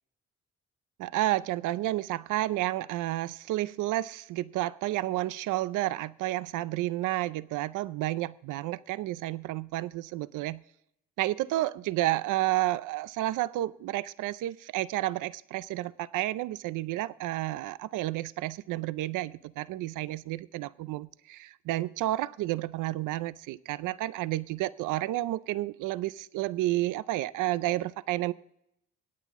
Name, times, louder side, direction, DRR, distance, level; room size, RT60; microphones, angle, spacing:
voice 1, 1.0-10.6 11.2-28.3, right 16 dB, 85° right, 17 dB, 0.5 m, -31 dB
23.0 x 9.2 x 3.6 m, 0.78 s
cardioid pair, 90°, 30 cm